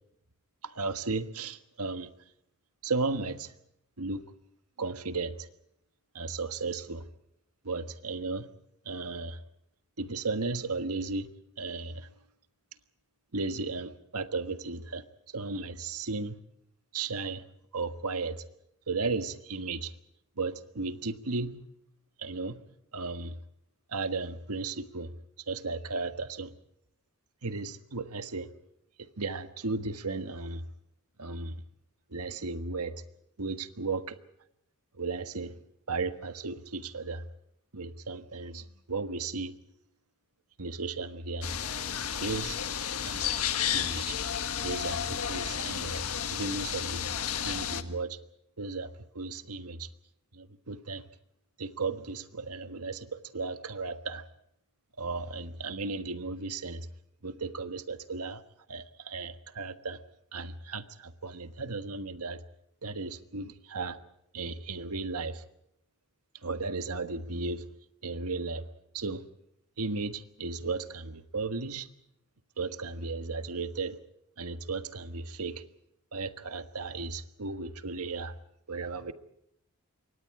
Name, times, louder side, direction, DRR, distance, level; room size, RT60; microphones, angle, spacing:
voice 1, 0.6-2.1 2.8-3.5 4.0-4.2 4.8-5.5 6.1-7.1 7.6-8.5 8.8-9.4 10.0-12.1 13.3-16.4 16.9-17.5 17.7-18.4 18.9-19.9 20.4-21.6 22.2-22.6 22.9-23.4 23.9-25.1 25.5-26.5 27.4-28.5 29.2-30.6 31.2-31.6 32.1-32.9 33.4-34.2 35.0-35.6 35.9-37.2 37.7-39.5 40.6-41.5 42.2-42.6 43.1-43.3 43.7-44.2 44.6-46.0 46.3-47.1 47.3-48.2 48.6-49.9 50.3-51.0 51.6-54.2 55.0-56.9 57.2-58.4 58.7-60.0 60.3-62.4 62.8-64.0 64.3-65.4 66.4-67.7 68.0-68.7 68.9-69.2 69.8-71.9 72.6-74.0 74.4-75.6 76.1-78.3 78.7-79.1, right 3 dB, 80° right, 1.5 m, -35 dB
sound 1, 41.4-47.8, left 8 dB, 80° left, 1.6 m, -32 dB
27.5 x 24.0 x 4.8 m
head